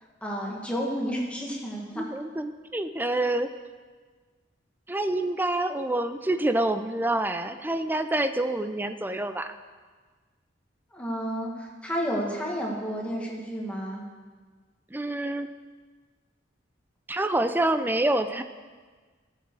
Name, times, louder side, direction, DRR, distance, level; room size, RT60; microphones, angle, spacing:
voice 1, 0.2-2.0 10.9-14.0, equal, 5° left, -2 dB, 1.7 m, -31 dB
voice 2, 2.0-3.5 4.9-9.5 14.9-15.5 17.1-18.4, right 1 dB, 10° right, 9 dB, 0.5 m, -27 dB
15.0 x 7.4 x 4.7 m, 1.5 s
head